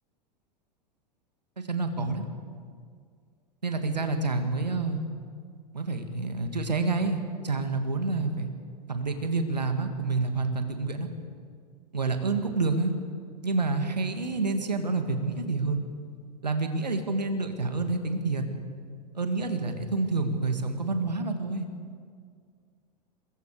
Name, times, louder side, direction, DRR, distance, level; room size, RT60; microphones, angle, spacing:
voice 1, 1.6-2.2 3.6-5.0 5.7-8.5 8.9-11.1 11.9-12.9 13.4-15.8 16.4-18.4 19.2-21.7, right 3 dB, 80° right, 6 dB, 2.1 m, -28 dB
26.5 x 21.5 x 4.9 m, 2.1 s
figure-of-eight pair, 90°, 21 cm